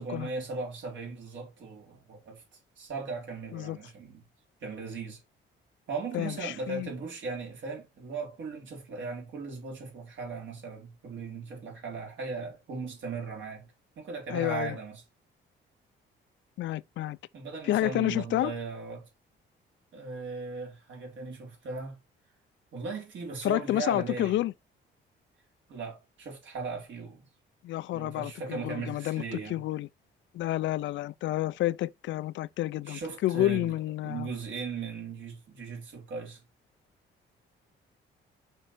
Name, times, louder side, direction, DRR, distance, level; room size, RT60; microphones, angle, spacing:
voice 1, 0.0-2.4 2.8-4.3 4.6-5.2 5.9-13.7 14.0-15.0 17.3-19.1 19.9-22.0 22.7-24.4 25.7-27.3 27.9-29.6 32.9-33.7 34.0-36.4, right 4 dB, 70° right, 4.0 m, -38 dB
voice 2, 6.1-6.9 14.3-14.8 16.6-17.2 17.6-18.5 23.4-24.5 27.6-29.9 30.3-34.3, left 14 dB, 70° left, 0.4 m, -30 dB
5.6 x 5.4 x 4.2 m
cardioid pair, 90°, 20 cm